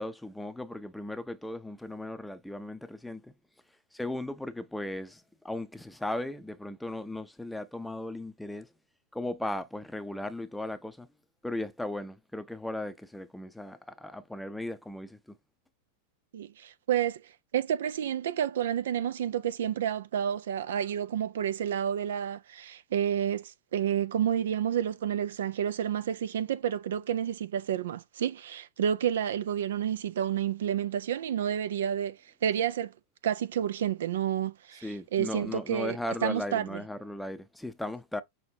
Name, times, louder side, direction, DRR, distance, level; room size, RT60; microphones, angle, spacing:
voice 1, 0.0-3.3 3.9-8.7 9.1-11.1 11.4-15.4 34.8-38.2, left 1 dB, 5° left, 0.6 m, -37 dB
voice 2, 16.3-17.2 17.5-32.2 32.4-32.9 33.2-36.8, right 9 dB, 60° right, 0.4 m, -30 dB
6.2 x 2.9 x 2.7 m
figure-of-eight pair, 90°, 0 cm